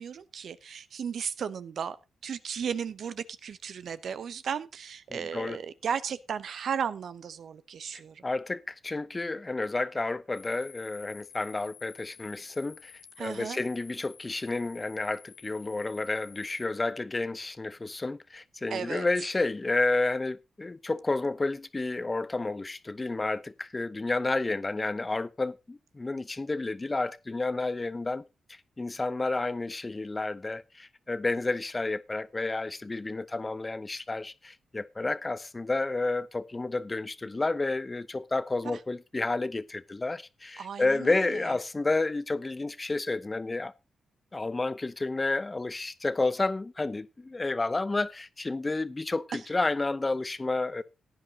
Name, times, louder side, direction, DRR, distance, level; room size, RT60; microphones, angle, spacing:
voice 1, 0.0-2.0 2.2-8.2 13.2-13.6 18.7-19.1 40.6-41.5, right 7 dB, 70° right, 0.7 m, -35 dB
voice 2, 5.1-5.6 8.2-12.9 13.2-28.2 28.5-43.7 44.3-50.8, left 2 dB, 30° left, 0.8 m, -31 dB
sound 1, 10.3-16.7, left 9 dB, 80° left, 1.0 m, -53 dB
16.0 x 9.8 x 2.8 m
supercardioid pair, 55°, 0 cm